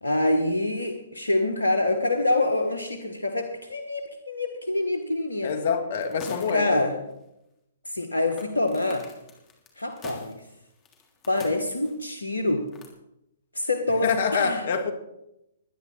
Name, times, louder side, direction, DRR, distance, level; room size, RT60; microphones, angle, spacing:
voice 1, 0.0-5.5 6.5-6.9 7.9-9.1 9.8-10.4 11.3-12.7 13.5-14.6, left 2 dB, 90° left, 1.4 m, -26 dB
voice 2, 5.4-6.9 14.0-14.9, left 6 dB, 55° left, 2.3 m, -26 dB
sound 1, 6.0-6.8 7.0-7.1 8.3-12.1 12.7-12.9, left 5 dB, 20° left, 3.4 m, -46 dB
21.5 x 9.6 x 4.2 m
figure-of-eight pair, 125°, 0 cm